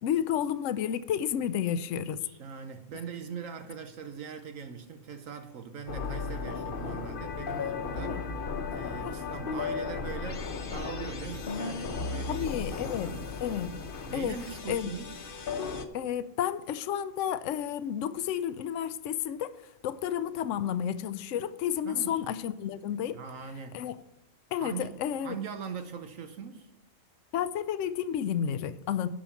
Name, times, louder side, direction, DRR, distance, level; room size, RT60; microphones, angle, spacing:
voice 1, 0.0-2.2 8.0-8.2 9.0-9.3 12.3-13.1 13.4-13.7 14.1-14.4 14.7-14.9 15.9-19.6 19.8-23.2 23.7-24.0 24.5-25.4 27.3-29.1, left 9 dB, 70° left, 0.9 m, -31 dB
voice 2, 2.2-8.2 8.7-13.3 14.1-15.2 21.8-22.2 23.1-23.8 24.6-26.7, right 6 dB, 75° right, 1.3 m, -41 dB
sound 1, 5.9-15.9, left 4 dB, 45° left, 0.9 m, -35 dB
12.0 x 5.2 x 7.0 m
omnidirectional pair, 1.4 m